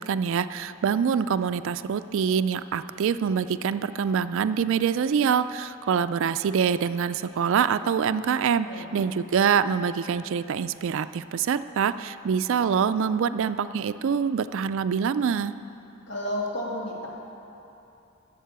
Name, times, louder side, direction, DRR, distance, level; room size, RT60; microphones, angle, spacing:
voice 1, 0.0-8.7 8.9-15.5, right 7 dB, 60° right, 13 dB, 0.3 m, -25 dB
voice 2, 8.6-9.0 16.1-17.1, left 1 dB, 55° left, -4 dB, 2.6 m, -32 dB
12.0 x 7.4 x 8.1 m, 2.9 s
head